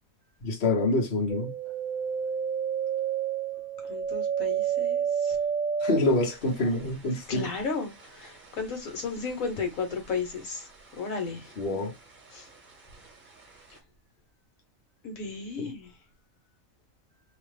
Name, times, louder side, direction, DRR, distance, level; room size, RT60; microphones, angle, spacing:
voice 1, 0.4-1.5 5.8-7.5 11.6-11.9 15.6-15.7, left 2 dB, 50° left, 1.2 m, -26 dB
sound 1, 1.3-10.7 11.0-11.8 12.2-13.1 13.5-13.6, right 7 dB, 40° right, 1.0 m, -31 dB
voice 2, 3.9-5.4 7.3-10.6 11.0-11.5 12.3-12.4 15.0-15.9, left 4 dB, 85° left, 1.4 m, -34 dB
2.9 x 2.2 x 3.2 m
omnidirectional pair, 1.4 m